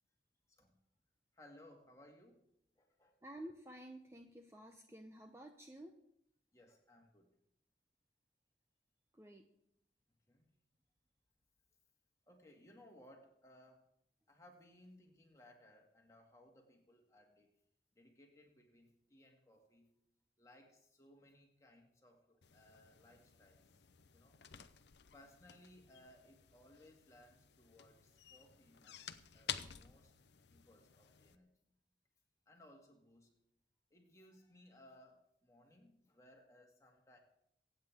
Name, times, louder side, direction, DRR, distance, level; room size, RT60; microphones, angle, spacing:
voice 1, 1.3-2.4 2.8-3.2 6.5-7.3 10.3-10.5 12.3-13.9 14.3-17.5 18.0-19.9 20.4-23.8 24.1-24.4 25.1-29.1 29.3-30.1 30.4-31.5 32.5-33.3 33.9-37.2, left 1 dB, 15° left, 0 dB, 2.2 m, -63 dB
voice 2, 3.2-6.0 9.1-9.5, right 1 dB, 15° right, 4 dB, 0.7 m, -52 dB
sound 1, 22.4-31.4, left 9 dB, 80° left, 0.7 m, -52 dB
24.0 x 8.8 x 3.6 m, 0.76 s
head